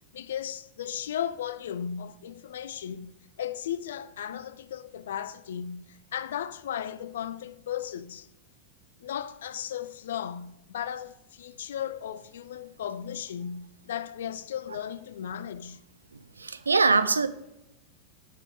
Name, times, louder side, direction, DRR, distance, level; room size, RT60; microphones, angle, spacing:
voice 1, 0.1-8.3 9.0-15.8, left 9 dB, 60° left, 0.3 m, -36 dB
voice 2, 16.4-17.3, right 4 dB, 75° right, 0.4 m, -22 dB
6.7 x 5.4 x 4.3 m
figure-of-eight pair, 90°, 0 cm